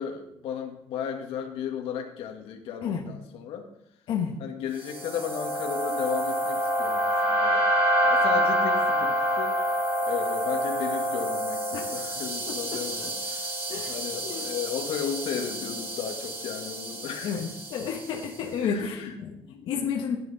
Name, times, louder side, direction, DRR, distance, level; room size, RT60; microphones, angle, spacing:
voice 1, 0.0-3.7 4.4-7.7 8.0-17.6 18.1-18.3 18.6-20.0, left 8 dB, 85° left, 3 dB, 1.9 m, -35 dB
sound 1, 4.8-18.2, right 1 dB, 25° right, 5.9 m, -28 dB
voice 2, 17.2-19.3 19.7-20.2, left 7 dB, 65° left, 0 dB, 1.6 m, -30 dB
16.0 x 10.5 x 4.2 m, 0.77 s
cardioid pair, 165°, 10 cm